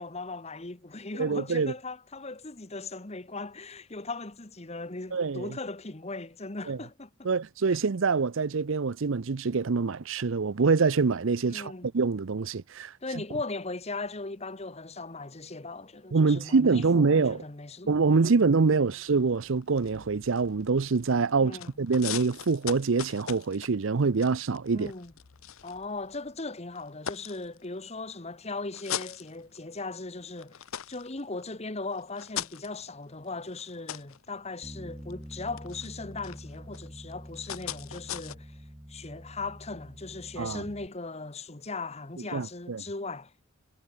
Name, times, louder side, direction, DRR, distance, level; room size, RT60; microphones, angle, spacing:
voice 1, 0.0-7.3 11.5-11.9 13.0-18.4 18.7-18.9 21.4-21.7 24.7-25.1 25.6-30.6 30.9-38.6 38.9-43.3, left 3 dB, 30° left, 1.3 m, -38 dB
voice 2, 1.2-1.7 5.1-5.5 6.7-6.8 7.2-12.9 16.1-17.4 17.9-24.9 40.4-40.6 42.3-42.8, right 4 dB, 65° right, 0.6 m, -25 dB
sound 1, 19.1-21.3 21.6-26.3 26.8-28.0 28.5-29.9 30.3-38.4, left 10 dB, 80° left, 0.8 m, -41 dB
Bass guitar, 34.6-40.9, equal, 10° right, 1.4 m, -46 dB
head